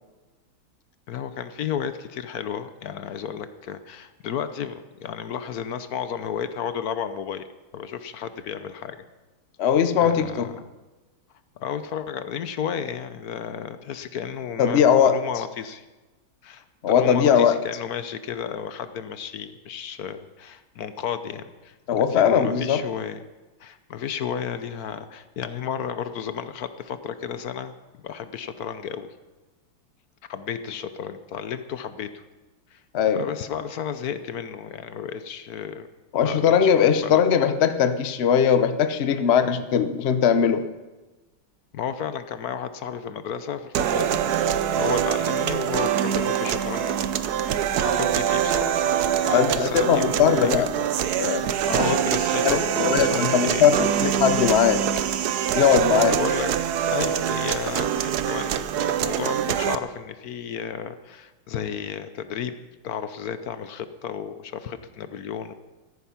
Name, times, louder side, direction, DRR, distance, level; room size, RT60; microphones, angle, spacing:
voice 1, 1.1-7.4 7.7-9.0 10.0-10.7 11.6-15.8 16.4-23.2 23.6-27.7 28.0-29.1 30.3-32.2 32.7-32.8 33.1-35.9 36.2-37.2 41.7-47.1 47.6-50.9 51.6-53.7 56.0-56.6 56.9-62.6 62.8-65.5, left 8 dB, 60° left, 11 dB, 1.0 m, -33 dB
voice 2, 9.6-10.5 14.6-15.2 16.8-17.6 21.9-22.8 32.9-33.2 36.1-40.6 49.3-50.7 51.2-51.5 51.8-51.9 52.4-54.8 55.5-56.2, left 8 dB, 90° left, 10 dB, 0.5 m, -20 dB
sound 1, 43.7-59.7, right 9 dB, 65° right, 1.0 m, -24 dB
15.5 x 14.0 x 5.8 m, 1.2 s
omnidirectional pair, 2.3 m